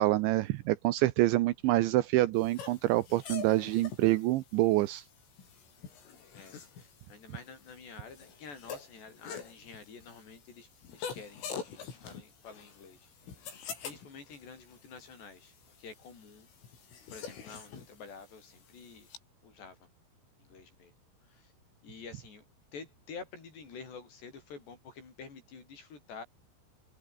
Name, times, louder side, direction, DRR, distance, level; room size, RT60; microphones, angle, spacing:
voice 1, 0.0-5.0, right 17 dB, 80° right, 2.9 m, -26 dB
sound 1, 2.4-19.2, left 7 dB, 75° left, 7.9 m, -46 dB
voice 2, 6.3-13.1 13.8-15.5 15.8-16.5 17.1-19.1 19.4-19.8 20.4-20.9 21.3-21.5 21.8-22.4 22.7-26.2, left 5 dB, 55° left, 8.2 m, -49 dB
omnidirectional pair, 5.9 m